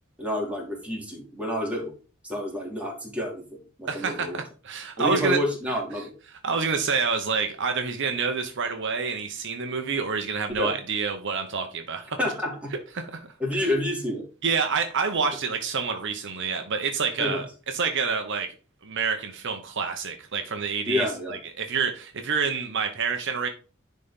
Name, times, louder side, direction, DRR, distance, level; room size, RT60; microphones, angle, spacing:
voice 1, 0.2-1.9 2.2-3.4 3.8-4.4 5.0-6.1 10.6-10.7 12.2-12.7 13.4-14.2 17.2-17.4 20.9-21.4, left 1 dB, 5° right, -1 dB, 2.8 m, -28 dB
voice 2, 3.9-5.4 6.4-12.2 12.9-13.3 13.6-13.7 14.4-17.5 17.7-18.5 18.8-23.5, right 5 dB, 60° right, 6 dB, 1.0 m, -28 dB
10.5 x 4.2 x 3.7 m, 0.36 s
head